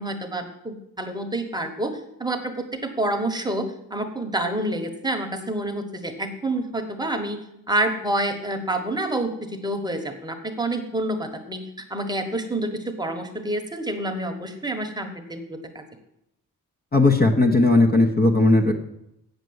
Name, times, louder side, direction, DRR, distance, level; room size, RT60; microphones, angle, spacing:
voice 1, 0.0-7.4 7.7-11.6 11.9-15.8, right 1 dB, 10° right, 5 dB, 1.1 m, -28 dB
voice 2, 16.9-18.7, left 2 dB, 25° left, 4 dB, 0.9 m, -17 dB
8.1 x 6.8 x 7.9 m, 0.82 s
cardioid pair, 125°, 34 cm